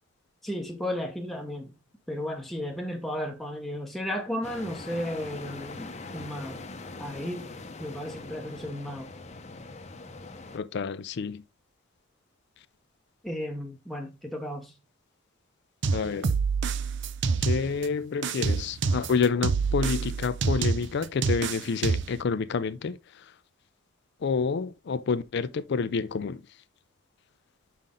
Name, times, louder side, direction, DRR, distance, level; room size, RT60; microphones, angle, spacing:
voice 1, 0.4-1.7 2.1-6.7 7.0-7.5 7.8-9.1 13.2-14.7, left 1 dB, ahead, 0.8 m, -34 dB
sound 1, 4.4-10.6, left 3 dB, 30° left, 0.7 m, -42 dB
voice 2, 10.5-11.4 15.9-16.3 17.4-23.2 24.2-26.4, left 5 dB, 55° left, 0.4 m, -28 dB
sound 2, 15.8-17.9 18.2-22.2, right 5 dB, 55° right, 0.5 m, -27 dB
5.8 x 5.2 x 3.6 m
head